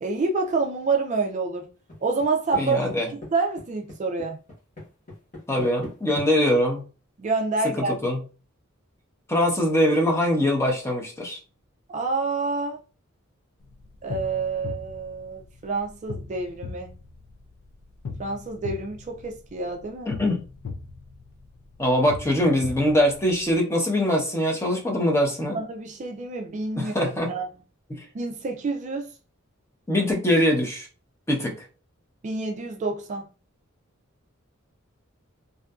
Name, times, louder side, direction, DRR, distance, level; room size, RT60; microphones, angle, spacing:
voice 1, 0.0-1.7 2.0-2.8 3.3-4.4 7.2-7.9 11.9-12.8 14.0-16.9 18.2-20.1 25.5-27.5 28.1-29.1 32.2-33.3, right 3 dB, 35° right, 0.3 m, -28 dB
sound 1, 1.9-2.6 2.9-3.3 3.6-6.3, left 2 dB, 40° left, 1.2 m, -38 dB
voice 2, 2.5-3.1 5.5-6.9 7.6-8.2 9.3-11.4 20.1-20.4 21.8-25.6 26.8-27.3 27.9-28.0 29.9-30.9 31.3-31.7, left 1 dB, 15° left, 0.7 m, -23 dB
sound 2, 13.6-23.5, left 4 dB, 80° left, 0.4 m, -40 dB
2.6 x 2.5 x 2.3 m
head